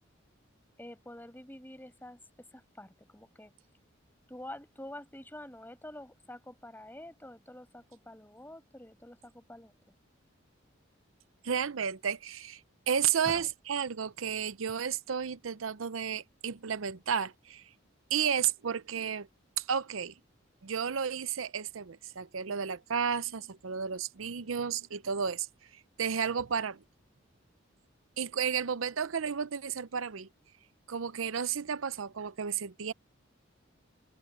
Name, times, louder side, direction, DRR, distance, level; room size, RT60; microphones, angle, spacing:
voice 1, 0.8-2.2 2.5-3.5 4.3-9.7 13.2-13.4, left 1 dB, 10° left, 6.2 m, -47 dB
voice 2, 11.4-12.6 12.9-17.6 18.1-19.3 19.6-20.1 20.6-25.5 26.0-26.8 28.2-30.3 30.9-32.9, right 7 dB, 90° right, 0.7 m, -32 dB
head